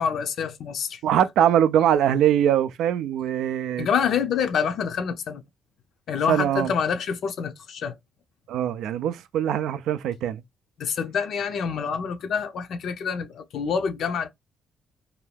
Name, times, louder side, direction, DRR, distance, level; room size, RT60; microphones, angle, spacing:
voice 1, 0.0-1.0 3.8-5.4 6.1-8.0 10.8-14.3, left 6 dB, 70° left, 0.5 m, -27 dB
voice 2, 1.0-3.9 6.3-6.7 8.5-10.4, right 10 dB, 85° right, 0.3 m, -22 dB
2.6 x 2.3 x 3.2 m
cardioid pair, 90°, 0 cm